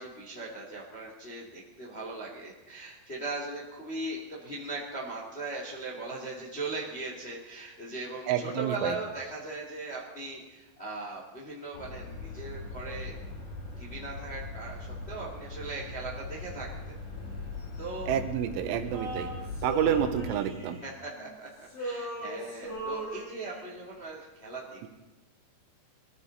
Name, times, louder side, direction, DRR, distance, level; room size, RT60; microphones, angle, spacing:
voice 1, 0.0-13.1 13.8-16.7 17.8-18.1 19.9-20.0 20.8-24.9, right 2 dB, 25° left, -3 dB, 1.4 m, -39 dB
voice 2, 8.3-8.9 18.1-19.3 19.6-20.8, right 10 dB, 85° right, 8 dB, 3.4 m, -28 dB
sound 1, 11.7-20.3, left 3 dB, 90° left, 7.3 m, -40 dB
Male singing, 18.9-21.4 21.6-23.8, right 1 dB, 70° left, 8.7 m, -38 dB
23.0 x 14.0 x 4.1 m, 1.1 s
omnidirectional pair, 5.6 m